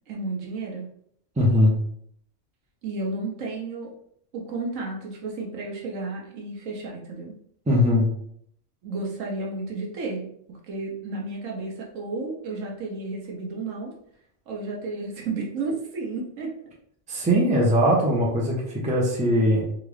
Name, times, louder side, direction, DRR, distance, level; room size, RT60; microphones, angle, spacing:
voice 1, 0.1-0.8 2.8-3.9 4.3-7.3 8.8-10.3 10.7-13.9 14.5-16.5, right 3 dB, 75° right, -1 dB, 1.2 m, -32 dB
voice 2, 1.4-1.8 7.7-8.1 17.1-19.6, equal, 10° right, -3 dB, 0.5 m, -20 dB
3.7 x 2.4 x 3.1 m, 0.67 s
omnidirectional pair, 1.4 m